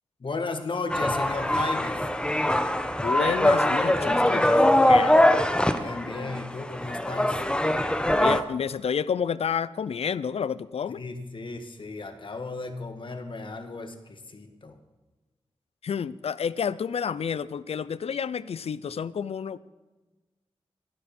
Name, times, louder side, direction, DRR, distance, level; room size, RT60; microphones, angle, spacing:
voice 1, 0.2-2.1 5.7-7.4 10.9-14.8, left 3 dB, 55° left, 7 dB, 1.9 m, -35 dB
sound 1, 0.9-8.4, left 1 dB, 10° left, 1.1 m, -22 dB
voice 2, 3.0-5.2 8.2-11.0 15.8-19.6, left 7 dB, 75° left, 18 dB, 0.6 m, -30 dB
19.0 x 12.5 x 4.4 m, 1.2 s
cardioid pair, 70°, 10 cm